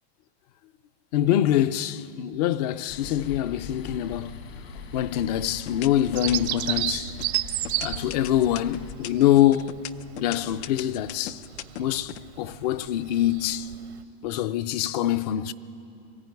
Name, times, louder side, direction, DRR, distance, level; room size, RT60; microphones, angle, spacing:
voice 1, 1.1-4.4 4.9-7.1 7.8-9.7 10.2-11.4 11.8-13.7 14.2-15.5, left 12 dB, 40° left, 0.4 m, -24 dB
sound 1, 2.9-8.9, left 5 dB, 70° left, 2.3 m, -41 dB
sound 2, 4.7-5.2 5.7-6.7 7.2-12.2, left 13 dB, 90° left, 0.7 m, -38 dB
Bird vocalization bird call bird song, 6.1-14.0, right 14 dB, 90° right, 1.1 m, -33 dB
19.5 x 15.0 x 9.3 m
supercardioid pair, 170°, 32 cm